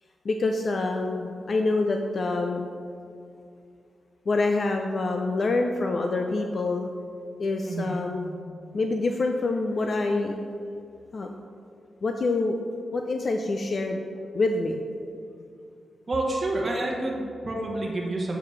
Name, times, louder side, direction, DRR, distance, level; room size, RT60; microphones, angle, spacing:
voice 1, 0.2-2.7 4.3-6.9 7.4-8.3 8.7-10.4 11.1-11.3 12.0-12.6 12.9-14.0 14.3-14.8, left 3 dB, 50° left, 4 dB, 0.4 m, -26 dB
voice 2, 7.6-8.0 16.1-18.4, right 2 dB, 35° right, -2 dB, 1.1 m, -28 dB
7.6 x 6.6 x 3.2 m, 2.4 s
cardioid pair, 90°, 0 cm